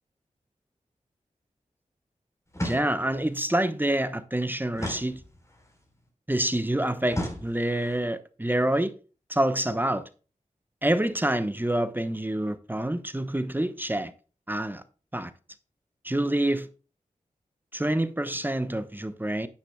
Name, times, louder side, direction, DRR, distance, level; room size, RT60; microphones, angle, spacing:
sound 1, 2.5-3.3 4.8-5.7 7.1-8.0, equal, 20° left, 4.2 m, -35 dB
voice 1, 2.6-5.2 6.3-8.9 9.3-10.0 10.8-14.1 14.5-14.8 15.1-15.3 16.0-16.7 17.7-19.5, right 1 dB, 15° right, 1.0 m, -27 dB
10.0 x 9.8 x 2.3 m
cardioid pair, 45°, 14 cm